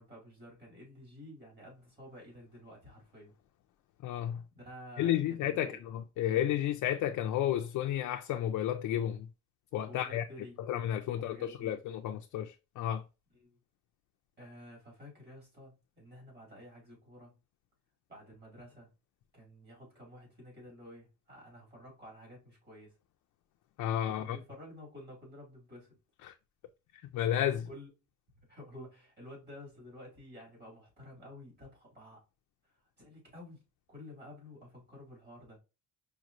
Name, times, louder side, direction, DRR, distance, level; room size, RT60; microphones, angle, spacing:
voice 1, 0.0-3.3 4.5-5.8 9.9-10.6 11.0-11.7 13.3-13.6 14.4-17.4 18.1-18.9 19.3-22.9 24.1-26.0 27.7-27.9 28.5-32.2 33.0-33.6 33.9-35.6, left 1 dB, 30° right, 2.3 m, -51 dB
voice 2, 4.0-4.4 5.0-9.3 9.7-10.2 10.7-13.0 23.8-24.4 26.2-26.3 26.9-27.7, left 11 dB, 80° left, 0.5 m, -32 dB
5.0 x 3.0 x 2.5 m
cardioid pair, 170°, 31 cm